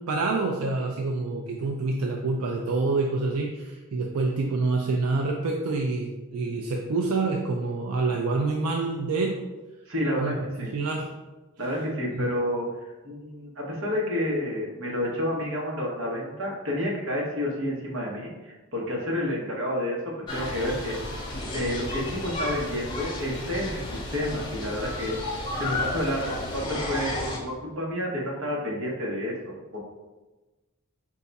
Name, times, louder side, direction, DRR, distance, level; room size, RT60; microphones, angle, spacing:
voice 1, 0.1-9.4 10.2-10.4 10.6-11.1 12.1-12.3, right 3 dB, 85° right, 1 dB, 0.4 m, -27 dB
voice 2, 9.9-10.3 10.6-10.7 11.6-12.7 13.0-21.0 21.5-23.8 24.1-25.2 25.6-29.8, left 1 dB, 60° right, -3 dB, 1.0 m, -29 dB
sound 1, 20.3-27.4, left 2 dB, 20° left, 0.7 m, -33 dB
4.6 x 2.3 x 4.0 m, 1.2 s
head